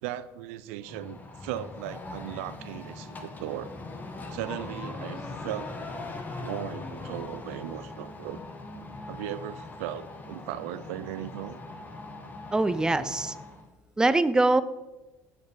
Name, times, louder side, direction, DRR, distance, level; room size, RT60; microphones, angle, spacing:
voice 1, 0.0-3.7 4.3-5.7 6.4-8.4 9.1-11.6 13.0-13.1, right 12 dB, 85° right, 14 dB, 0.3 m, -37 dB
sound 1, 0.8-13.6, left 3 dB, 25° left, 1.1 m, -41 dB
voice 2, 12.5-13.3 14.0-14.6, right 2 dB, 10° right, 14 dB, 0.4 m, -23 dB
7.0 x 6.4 x 3.4 m, 1.1 s
supercardioid pair, 95°, 7 cm